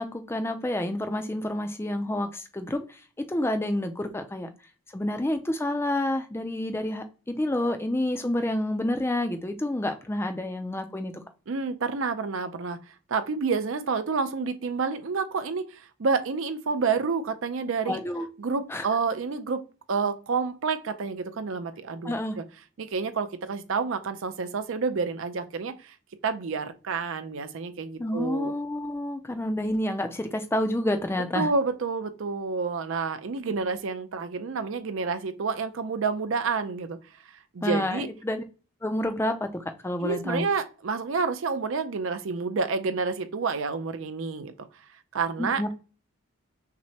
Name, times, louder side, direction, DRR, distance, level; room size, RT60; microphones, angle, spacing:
voice 1, 0.0-2.8 3.3-4.5 4.9-11.1 17.9-18.3 18.7-18.9 22.0-22.4 28.0-31.5 37.6-38.4 38.8-40.5 45.4-45.7, left 1 dB, 10° left, 0.4 m, -29 dB
voice 2, 11.5-12.8 13.1-18.0 18.4-22.4 22.8-26.0 26.2-28.5 31.3-37.0 37.5-38.1 40.0-44.5 45.1-45.6, right 4 dB, 60° right, 0.5 m, -29 dB
5.9 x 2.1 x 2.8 m
head